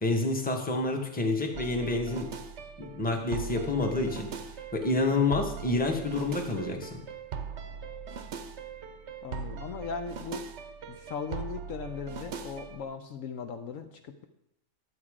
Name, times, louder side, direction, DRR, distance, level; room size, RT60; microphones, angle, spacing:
voice 1, 0.0-2.3 2.8-4.3 4.7-7.0, left 2 dB, 5° left, 2 dB, 1.0 m, -28 dB
sound 1, 1.5-12.8, right 6 dB, 55° right, 0.9 m, -40 dB
voice 2, 9.2-10.4 10.9-14.2, left 5 dB, 65° left, 7 dB, 1.0 m, -38 dB
11.0 x 7.2 x 4.9 m, 0.82 s
omnidirectional pair, 1.6 m